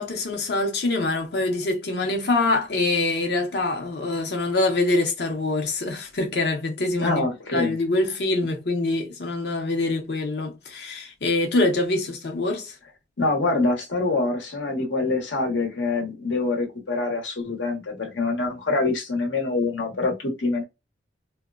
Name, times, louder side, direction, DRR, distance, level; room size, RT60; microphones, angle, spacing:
voice 1, 0.0-7.2 7.5-12.7, left 2 dB, 65° left, 0.7 m, -25 dB
voice 2, 7.0-7.8 13.2-20.6, left 3 dB, 90° left, 1.0 m, -25 dB
2.8 x 2.2 x 2.3 m
head